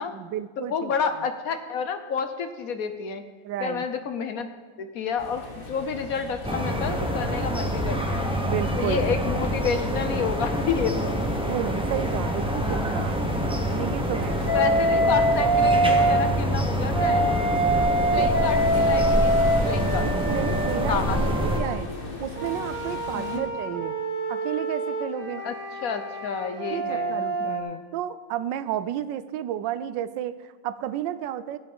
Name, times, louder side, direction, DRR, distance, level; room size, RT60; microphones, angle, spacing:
voice 1, 0.0-0.9 3.4-3.9 8.5-9.5 11.5-13.2 13.8-14.4 18.1-18.4 20.1-21.9 22.2-23.9 24.3-25.4 26.7-27.6 27.9-31.6, right 11 dB, 85° right, 15 dB, 1.3 m, -32 dB
voice 2, 0.6-3.2 3.6-4.5 4.8-8.3 8.8-11.2 14.5-17.3 17.8-20.1 20.9-21.2 23.1-23.4 25.4-25.6 25.8-27.8, left 6 dB, 60° left, 8 dB, 1.0 m, -30 dB
sound 1, 5.2-23.4, left 2 dB, 30° left, 1.6 m, -38 dB
sound 2, 6.4-21.6, equal, 5° right, 0.6 m, -26 dB
Wind instrument woodwind instrument, 14.5-16.2 16.9-21.7 22.4-27.6, right 1 dB, 45° right, 2.2 m, -25 dB
15.0 x 8.5 x 5.3 m, 1.4 s
omnidirectional pair, 1.9 m